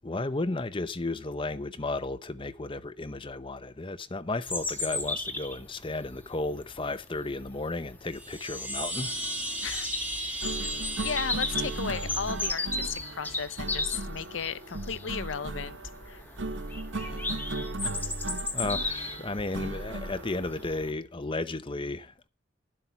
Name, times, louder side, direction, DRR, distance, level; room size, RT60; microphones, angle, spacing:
voice 1, 0.0-9.1 17.0-17.2 18.5-22.3, left 2 dB, 25° left, 0.7 m, -34 dB
Bird vocalization bird call bird song, 4.5-20.9, left 2 dB, 10° left, 1.6 m, -36 dB
Chime, 8.1-12.8, right 1 dB, 10° right, 2.4 m, -36 dB
sound 1, 8.9-20.7, right 2 dB, 65° right, 1.0 m, -37 dB
voice 2, 11.0-15.8 16.1-16.2, left 7 dB, 70° left, 0.6 m, -35 dB
11.5 x 7.7 x 5.8 m
head